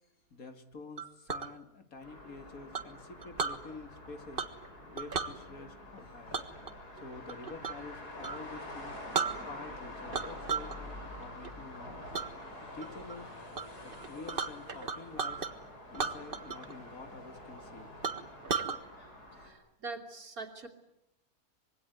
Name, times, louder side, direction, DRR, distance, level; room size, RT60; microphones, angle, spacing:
voice 1, 0.3-4.4 4.9-6.4 7.0-9.0 9.5-12.1 12.6-13.3 13.8-15.4 15.9-17.9, left 3 dB, 65° left, 8 dB, 2.6 m, -48 dB
Chink clink, 1.0-1.5 2.7-3.6 4.4-4.7 5.0-5.3 6.3-7.9 8.2-8.4 8.8-8.9 9.1-9.8 10.1-10.8 11.1-11.5 12.1-12.3 12.8-13.2 13.5-13.7 13.9-15.5 15.9-16.7 17.0-17.1 17.6-17.7 18.0-18.8, right 5 dB, 35° right, 1.6 m, -35 dB
sound 1, 2.0-19.5, left 1 dB, 85° left, 6.4 m, -47 dB
voice 2, 19.3-20.7, right 3 dB, 65° right, 4 dB, 3.3 m, -43 dB
25.5 x 22.5 x 9.3 m, 0.86 s
omnidirectional pair, 1.6 m